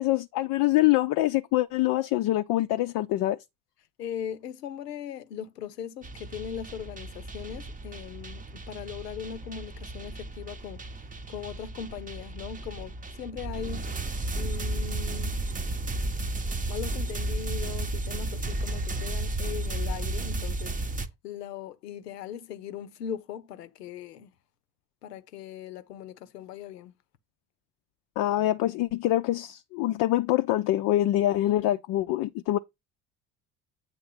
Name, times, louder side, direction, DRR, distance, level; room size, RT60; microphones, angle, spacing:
voice 1, 0.0-3.4 28.2-32.6, left 15 dB, 45° left, 0.5 m, -25 dB
voice 2, 4.0-10.8 11.3-13.9 14.3-15.4 16.7-20.7 21.2-24.3 25.0-26.9, left 9 dB, 85° left, 0.8 m, -39 dB
sound 1, 6.0-21.1, right 2 dB, 15° right, 0.8 m, -33 dB
8.5 x 3.1 x 5.8 m
figure-of-eight pair, 55°, 47 cm